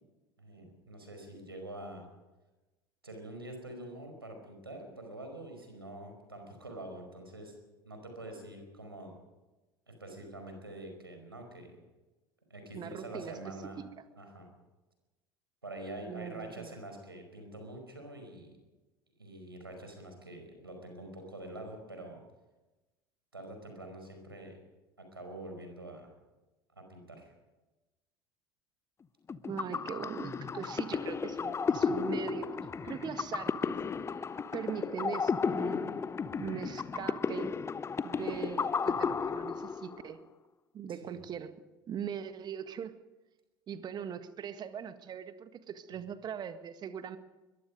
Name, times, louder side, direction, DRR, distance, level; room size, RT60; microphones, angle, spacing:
voice 1, 0.4-2.1 3.0-7.5 7.8-9.1 9.9-11.8 12.5-13.8 14.1-14.5 15.6-18.5 19.2-22.2 23.3-24.6 25.0-26.1 26.8-27.3 40.9-41.2, right 1 dB, 85° right, 4 dB, 5.1 m, -46 dB
voice 2, 12.7-13.4 16.1-16.7 29.4-33.7 34.5-36.1 36.4-37.5 38.0-40.2 40.7-41.5 41.9-42.9 43.7-47.2, right 8 dB, 35° right, 10 dB, 1.7 m, -40 dB
sound 1, 29.3-40.1, left 5 dB, 20° left, 0.8 m, -33 dB
22.5 x 22.0 x 5.3 m, 1.1 s
figure-of-eight pair, 70°, 12 cm